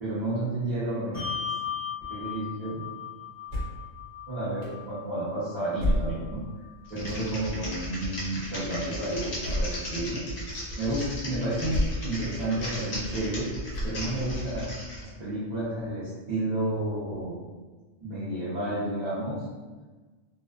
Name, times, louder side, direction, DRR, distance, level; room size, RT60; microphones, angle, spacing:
voice 1, 0.0-1.3 2.1-2.8 4.3-6.4 6.9-13.5 13.8-14.7 15.0-17.4 18.0-19.4, right 1 dB, 40° right, -13 dB, 0.7 m, -31 dB
Bell, 1.1-8.0, left 7 dB, 10° right, 0.4 m, -39 dB
sound 1, 3.5-3.9 4.6-4.7 5.8-6.5 7.1-7.2 9.4-9.9 10.5-10.6 11.7-12.1 12.6-12.7 13.7-14.3, left 1 dB, 65° right, 1.0 m, -29 dB
Typing, 6.9-15.0, equal, 50° left, 0.9 m, -36 dB
2.4 x 2.3 x 2.3 m, 1.3 s
omnidirectional pair, 1.4 m